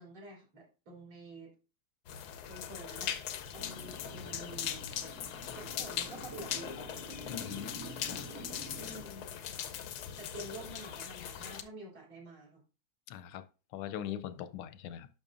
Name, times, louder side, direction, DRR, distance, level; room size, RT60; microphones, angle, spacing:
voice 1, 0.0-1.5 2.4-3.2 3.5-4.8 5.5-6.9 8.7-9.2 10.2-12.6, right 1 dB, 70° right, 4.4 m, -48 dB
sound 1, 2.1-11.6, left 9 dB, 70° left, 0.9 m, -40 dB
Motorcycle, 3.5-9.0, right 2 dB, 40° right, 1.9 m, -49 dB
voice 2, 7.3-7.7 8.0-8.2 13.1-13.4 13.7-15.1, left 11 dB, 85° left, 1.5 m, -41 dB
10.5 x 6.0 x 2.5 m
omnidirectional pair, 2.4 m